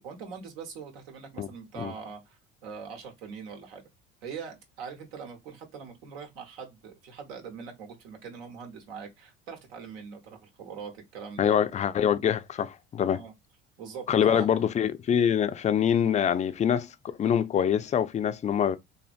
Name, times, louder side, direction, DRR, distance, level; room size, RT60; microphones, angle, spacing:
voice 1, 0.0-3.9 4.2-11.6 13.1-13.3 13.8-14.5, right 6 dB, 85° right, 1.0 m, -42 dB
voice 2, 11.4-13.2 14.1-16.9 17.2-18.8, left 8 dB, 25° left, 0.3 m, -25 dB
2.6 x 2.6 x 2.4 m
hypercardioid pair, 75°, 29 cm